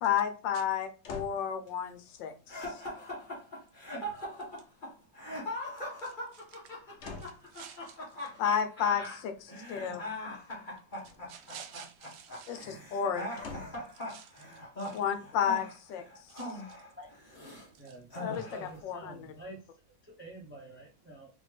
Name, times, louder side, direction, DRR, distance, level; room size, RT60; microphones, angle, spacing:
voice 1, 0.0-2.8 8.4-10.0 12.5-13.2 14.9-16.0 18.2-19.3, left 8 dB, 80° left, 1.4 m, -32 dB
sound 1, 1.0-1.5 4.0-4.7 5.7-6.1 7.0-7.5 11.0-11.5 13.4-13.9 14.6-14.7, left 4 dB, 60° left, 0.7 m, -46 dB
sound 2, 2.5-17.7 18.1-18.8, left 1 dB, 25° left, 1.8 m, -41 dB
voice 2, 6.0-6.6 7.2-8.0 11.3-12.7 14.1-14.4 14.8-15.0 16.4-16.5 17.9-18.0, right 8 dB, 75° right, 1.1 m, -50 dB
voice 3, 17.8-19.6 20.1-21.3, right 2 dB, 15° right, 0.4 m, -48 dB
4.1 x 3.4 x 3.4 m
omnidirectional pair, 2.0 m